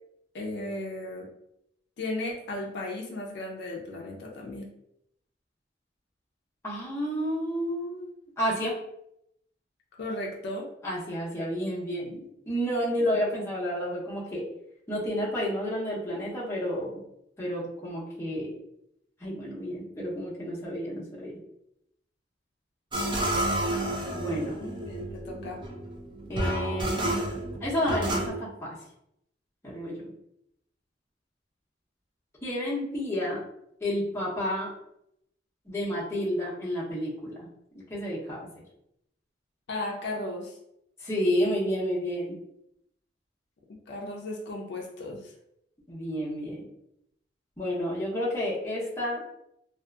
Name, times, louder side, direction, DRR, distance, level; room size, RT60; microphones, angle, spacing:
voice 1, 0.3-1.3 2.0-4.7 10.0-10.7 13.1-13.5 24.6-25.6 39.7-40.6 43.9-45.3, left 2 dB, 60° left, -1 dB, 0.4 m, -35 dB
voice 2, 6.6-8.1 8.4-8.7 10.8-14.4 14.9-17.0 17.4-18.6 19.2-21.4 24.1-24.6 26.3-27.0 27.6-28.7 29.6-30.0 32.4-33.4 33.8-34.7 35.7-37.5 37.9-38.5 41.0-42.4 45.9-46.7 47.6-49.2, equal, 15° left, -7 dB, 0.7 m, -30 dB
sound 1, 22.9-28.3, right 1 dB, 25° right, 0.4 m, -30 dB
2.6 x 2.3 x 2.3 m, 0.78 s
head